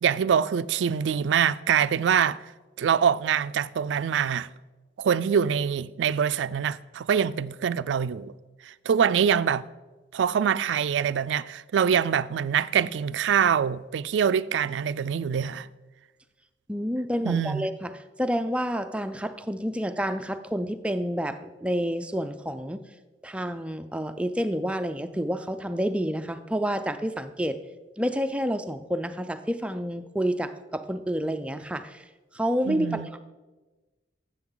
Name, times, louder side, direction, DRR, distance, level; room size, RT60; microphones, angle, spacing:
voice 1, 0.0-2.4 2.8-4.5 5.0-8.3 8.7-9.6 10.1-15.7 17.3-17.7 32.7-33.1, right 7 dB, 80° right, 0.3 m, -24 dB
voice 2, 16.7-22.8 23.2-27.6 28.0-32.0 32.3-33.2, equal, 5° right, 0.4 m, -29 dB
12.0 x 7.9 x 3.9 m
head